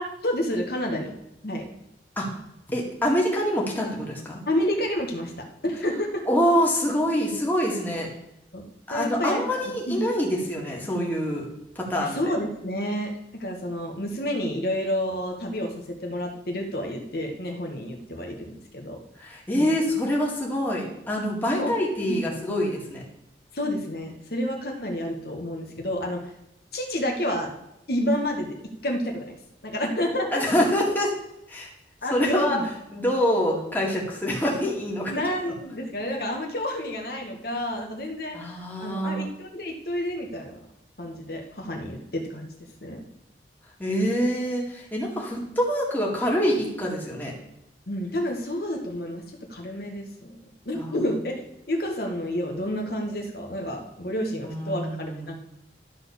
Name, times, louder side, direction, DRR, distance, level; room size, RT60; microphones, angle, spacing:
voice 1, 0.2-1.1 1.4-1.6 4.5-5.3 5.6-6.1 8.5-8.6 8.9-9.4 9.9-10.0 12.0-19.0 19.6-19.7 21.5-21.7 22.1-22.2 23.5-26.2 26.7-27.5 27.9-28.5 28.8-29.3 29.6-30.4 32.0-32.6 35.1-38.4 38.8-40.6 41.0-42.5 42.8-43.0 47.9-49.2 49.5-50.4 50.6-51.3 51.7-55.3, left 1 dB, 60° left, 2 dB, 1.5 m, -29 dB
voice 2, 2.7-4.4 6.3-8.1 8.9-11.5 11.8-12.3 19.2-23.0 30.3-31.1 31.5-31.7 32.1-32.6 32.9-35.1 38.3-39.3 43.8-47.3 50.7-51.1 54.4-55.3, equal, 10° left, -3 dB, 2.0 m, -25 dB
12.0 x 4.2 x 7.0 m, 0.84 s
head